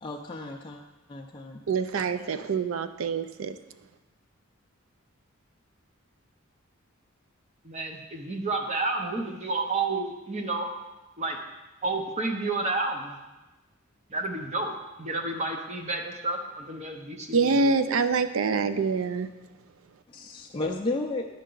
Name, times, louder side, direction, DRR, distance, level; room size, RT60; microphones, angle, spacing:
voice 1, 0.0-0.8 1.1-1.6 20.1-21.3, left 2 dB, 25° left, 0 dB, 0.4 m, -33 dB
voice 2, 1.7-3.5 17.3-19.3, right 4 dB, 70° right, 11 dB, 0.4 m, -25 dB
voice 3, 7.6-10.7 11.2-11.4 11.8-13.2 14.1-14.7 15.0-17.7, right 3 dB, 30° right, 3 dB, 0.7 m, -30 dB
10.5 x 5.4 x 3.8 m, 1.1 s
head